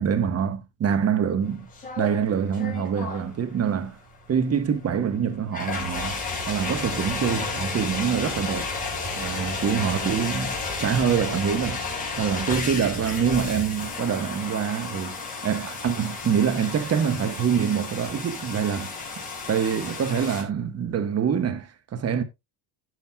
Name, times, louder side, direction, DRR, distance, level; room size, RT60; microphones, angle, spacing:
voice 1, 0.0-1.7 2.0-4.0 4.3-6.2 6.5-8.7 9.2-11.8 12.2-15.2 15.4-18.9 19.5-22.2, right 7 dB, 35° right, 1.4 m, -25 dB
sound 1, 1.5-20.4, left 4 dB, 20° left, 4.9 m, -33 dB
16.5 x 6.5 x 2.3 m
cardioid pair, 120°, 44 cm